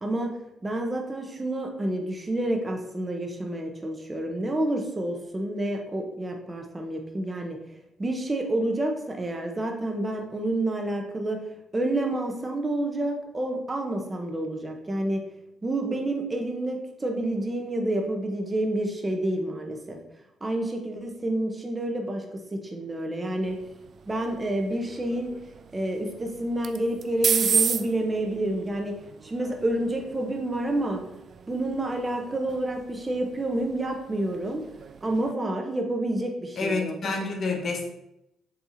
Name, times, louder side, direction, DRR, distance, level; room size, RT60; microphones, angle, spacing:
voice 1, 0.0-0.3 0.6-7.6 8.0-11.4 11.7-15.2 15.6-20.0 20.4-22.2 22.5-23.6 24.1-25.3 25.7-28.9 29.2-31.0 31.5-34.6 35.0-37.1, right 1 dB, 25° right, 2 dB, 1.5 m, -29 dB
sound 1, 23.4-35.3, right 7 dB, 55° right, 0.4 m, -34 dB
voice 2, 36.6-37.9, left 3 dB, 50° left, 2 dB, 1.5 m, -28 dB
7.4 x 3.5 x 4.2 m, 0.85 s
hypercardioid pair, 50°, 0 cm